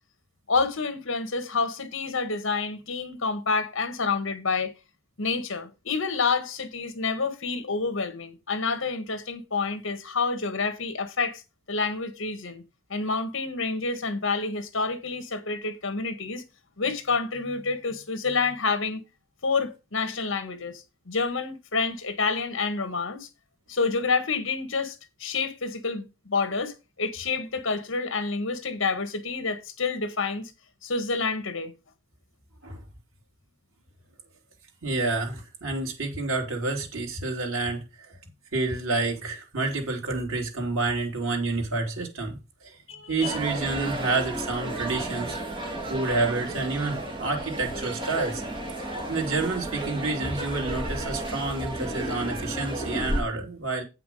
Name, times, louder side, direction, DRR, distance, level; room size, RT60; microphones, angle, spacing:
voice 1, 0.5-4.7 5.2-11.4 11.7-12.6 12.9-16.4 16.8-19.0 19.4-23.3 23.7-30.5 30.8-31.7 42.9-43.4, left 4 dB, 65° left, 1.5 m, -28 dB
voice 2, 34.8-38.2 38.5-42.8 43.1-45.4 45.9-48.4 48.8-53.8, right 3 dB, 85° right, 3.0 m, -29 dB
sound 1, 43.2-53.2, right 1 dB, 25° right, 3.0 m, -32 dB
8.4 x 5.9 x 5.4 m
head